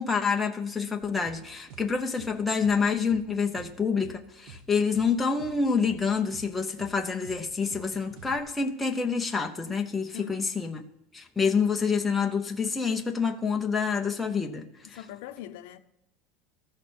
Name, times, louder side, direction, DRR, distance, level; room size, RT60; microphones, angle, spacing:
voice 1, 0.0-10.8 11.1-15.0, left 5 dB, 5° left, 0.7 m, -27 dB
sound 1, 1.0-8.4, right 4 dB, 50° right, 1.1 m, -48 dB
voice 2, 10.1-10.6 14.8-15.8, left 11 dB, 60° left, 0.8 m, -42 dB
14.0 x 6.5 x 5.4 m
supercardioid pair, 180°, 0 cm